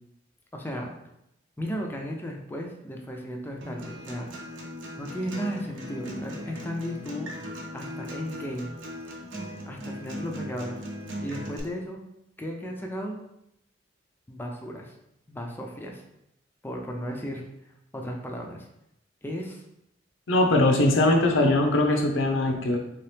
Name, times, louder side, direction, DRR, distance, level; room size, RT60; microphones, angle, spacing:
voice 1, 0.5-0.9 1.6-4.6 5.0-7.3 7.7-8.8 9.7-10.8 11.2-12.0 12.4-13.2 14.3-14.9 15.3-16.0 16.6-17.5 17.9-18.6 19.2-19.6, equal, 10° left, 1 dB, 0.4 m, -35 dB
Acoustic guitar, 3.6-11.6, equal, 70° right, 0.7 m, -38 dB
voice 2, 20.3-22.8, left 1 dB, 90° left, 3 dB, 0.6 m, -21 dB
3.5 x 2.8 x 3.3 m, 0.81 s
head